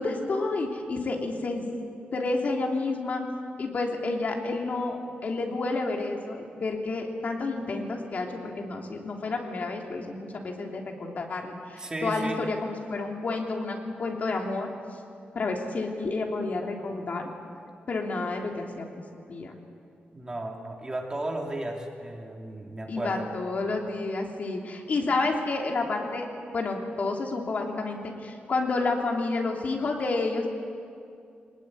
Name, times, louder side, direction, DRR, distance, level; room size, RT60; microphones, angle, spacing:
voice 1, 0.0-1.6 2.1-3.2 3.6-14.7 15.3-17.2 17.9-18.9 19.3-19.5 22.9-26.3 26.5-30.5, left 3 dB, 50° left, 1 dB, 3.0 m, -30 dB
voice 2, 11.8-12.4 20.1-23.3, right 1 dB, 20° right, 1 dB, 3.0 m, -34 dB
23.5 x 20.0 x 9.8 m, 2.4 s
wide cardioid pair, 145°, 4 cm